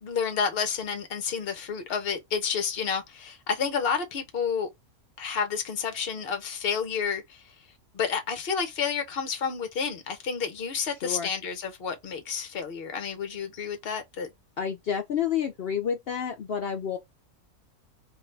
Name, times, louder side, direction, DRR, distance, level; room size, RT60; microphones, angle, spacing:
voice 1, 0.0-4.7 5.2-7.4 7.9-14.3, left 6 dB, 50° left, 0.9 m, -30 dB
voice 2, 14.6-17.0, left 8 dB, 75° left, 0.5 m, -29 dB
4.5 x 2.3 x 3.2 m
omnidirectional pair, 1.6 m